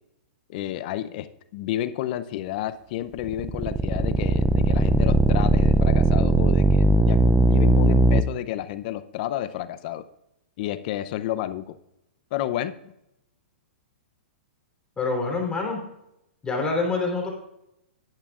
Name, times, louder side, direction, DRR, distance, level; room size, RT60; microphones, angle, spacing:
voice 1, 0.5-10.0 10.6-11.8 12.3-12.7, left 13 dB, 50° left, 14 dB, 0.6 m, -31 dB
sound 1, 3.2-8.2, right 2 dB, 10° right, 0.4 m, -19 dB
voice 2, 15.0-15.8 16.4-17.3, left 3 dB, 15° left, -1 dB, 3.5 m, -26 dB
13.5 x 10.5 x 2.4 m, 0.86 s
hypercardioid pair, 135°, 6 cm